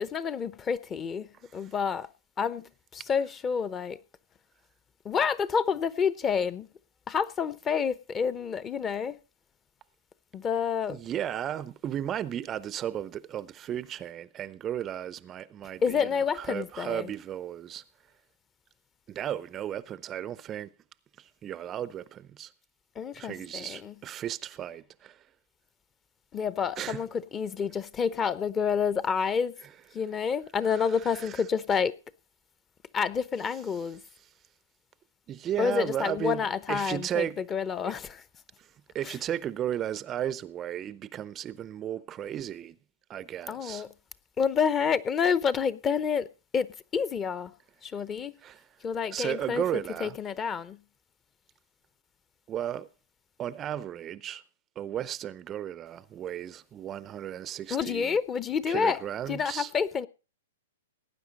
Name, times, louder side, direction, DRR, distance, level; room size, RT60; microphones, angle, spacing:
voice 1, 0.0-2.1 2.4-4.0 5.0-6.7 7.1-9.2 10.3-11.0 15.8-17.1 23.0-23.9 26.3-29.6 29.9-31.9 32.9-34.0 35.6-38.2 39.0-39.1 43.5-43.9 44.4-46.3 46.5-47.5 47.8-48.3 48.8-49.6 50.0-50.8 57.7-59.0 59.3-60.1, left 6 dB, 20° left, 0.7 m, -29 dB
voice 2, 10.9-16.1 16.4-17.8 19.1-20.7 21.2-22.5 23.2-25.2 26.8-27.0 30.7-31.4 35.3-37.4 37.8-37.9 38.6-38.7 38.9-42.8 43.1-43.9 48.4-48.7 49.1-50.2 52.5-52.9 53.4-54.4 54.8-58.2 58.7-59.7, right 10 dB, 25° right, 0.5 m, -34 dB
18.0 x 9.6 x 4.0 m
hypercardioid pair, 120°, 0 cm